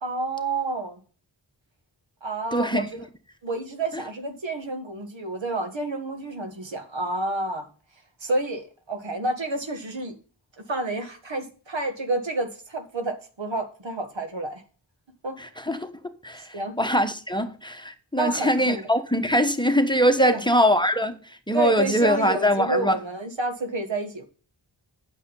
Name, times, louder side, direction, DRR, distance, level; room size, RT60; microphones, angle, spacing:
voice 1, 0.0-1.0 2.2-3.1 3.4-7.7 8.2-10.1 10.6-14.6 15.2-15.4 16.5-16.7 18.1-18.8 20.2-20.4 21.5-24.2, right 2 dB, 85° right, 1.7 m, -29 dB
voice 2, 2.5-2.9 15.4-15.9 16.2-16.5 16.8-21.2 21.5-23.0, equal, 10° left, 1.2 m, -22 dB
9.0 x 6.6 x 5.4 m
wide cardioid pair, 50°, 44 cm